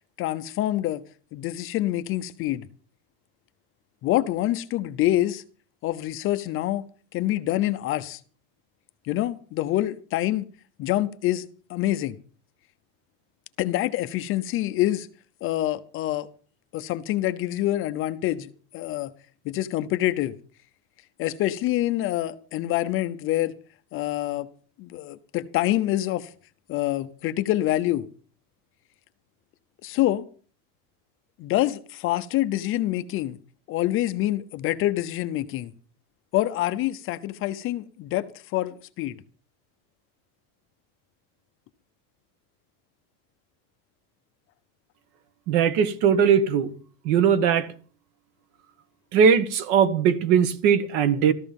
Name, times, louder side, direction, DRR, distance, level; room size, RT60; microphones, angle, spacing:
voice 1, 0.2-1.0 1.3-2.7 4.0-5.4 5.8-6.8 7.1-8.2 9.1-10.4 10.8-12.2 13.6-15.1 15.4-16.3 16.7-19.1 19.4-20.3 21.2-23.5 23.9-24.5 24.8-26.3 26.7-28.1 29.8-30.2 31.4-33.4 33.7-35.7 36.3-39.2, left 14 dB, 30° left, 0.6 m, -26 dB
voice 2, 45.5-46.7 47.0-47.7 49.1-51.3, right 7 dB, 55° right, 1.6 m, -20 dB
14.0 x 14.0 x 5.3 m
supercardioid pair, 160°, 40 cm